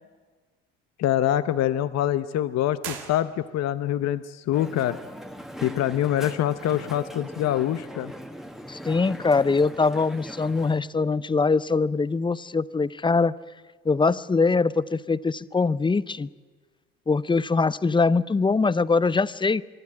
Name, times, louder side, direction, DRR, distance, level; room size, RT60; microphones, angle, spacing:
voice 1, 1.0-5.0 5.6-8.1, left 12 dB, 55° left, 14 dB, 0.8 m, -25 dB
sound 1, 2.8-3.8, right 8 dB, 85° right, 1.9 m, -39 dB
Crowd, 4.5-10.8, equal, ahead, 1.5 m, -40 dB
voice 2, 8.7-13.3 13.9-16.3 17.1-19.6, left 4 dB, 15° left, 18 dB, 0.6 m, -23 dB
23.5 x 12.0 x 9.5 m, 1.4 s
supercardioid pair, 75°, 31 cm